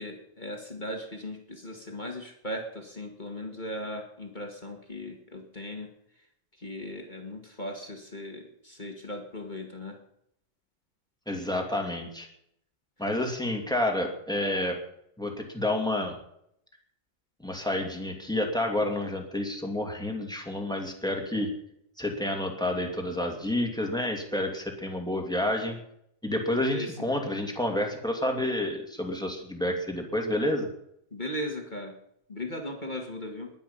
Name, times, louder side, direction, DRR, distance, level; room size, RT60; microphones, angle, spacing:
voice 1, 0.0-5.9 6.6-10.0 26.5-27.1 31.1-31.9 32.3-33.5, left 1 dB, 25° left, 2 dB, 1.0 m, -38 dB
voice 2, 11.2-12.3 13.0-14.8 15.2-16.1 17.4-21.5 22.0-25.8 26.2-30.7, left 1 dB, ahead, 3 dB, 1.5 m, -29 dB
21.0 x 10.5 x 5.6 m, 0.74 s
omnidirectional pair, 4.3 m